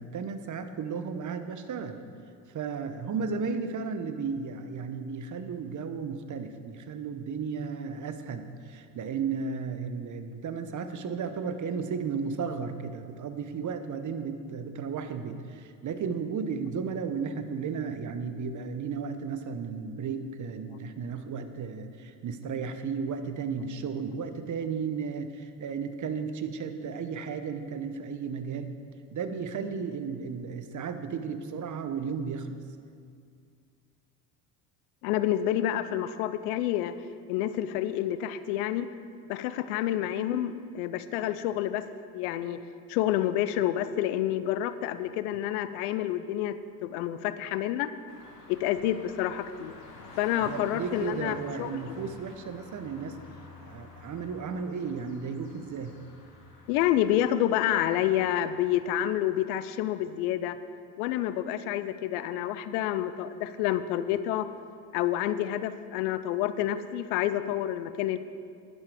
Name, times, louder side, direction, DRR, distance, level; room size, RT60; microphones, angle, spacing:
voice 1, 0.0-2.0 2.5-28.7 29.1-32.6 50.4-53.2 53.6-56.0, right 5 dB, 40° right, 9 dB, 1.1 m, -34 dB
voice 2, 35.0-36.9 37.3-38.9 39.3-41.9 42.1-42.6 42.9-47.9 48.5-49.7 50.2-51.7 56.7-60.6 61.0-64.5 64.9-68.2, left 12 dB, 70° left, 13 dB, 0.7 m, -28 dB
Residential Traffic, 48.1-58.8, left 2 dB, 90° left, 1.6 m, -50 dB
11.0 x 11.0 x 4.9 m, 2.3 s
hypercardioid pair, 65°, 46 cm